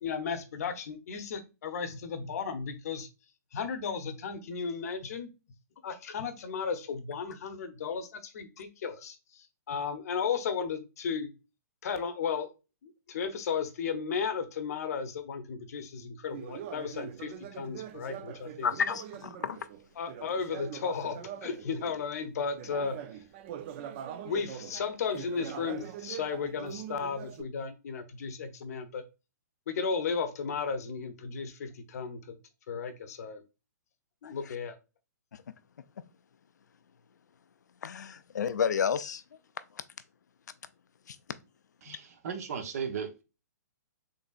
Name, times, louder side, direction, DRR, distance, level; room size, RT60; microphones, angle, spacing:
voice 1, 0.0-3.1 3.5-5.3 5.8-11.3 11.8-12.5 12.8-18.7 20.0-23.0 24.2-29.0 29.7-32.4 32.7-33.4 34.2-34.8, left 6 dB, 60° left, 0.7 m, -34 dB
Conversation, 16.3-22.0 22.5-27.4, right 10 dB, 40° right, 0.4 m, -43 dB
voice 2, 18.6-19.6 34.2-34.5 37.8-39.2 41.1-41.2 41.9-42.0, left 7 dB, 80° left, 0.4 m, -31 dB
voice 3, 41.8-43.2, right 7 dB, 60° right, 0.9 m, -36 dB
3.9 x 3.3 x 2.4 m
hypercardioid pair, 130°, 9 cm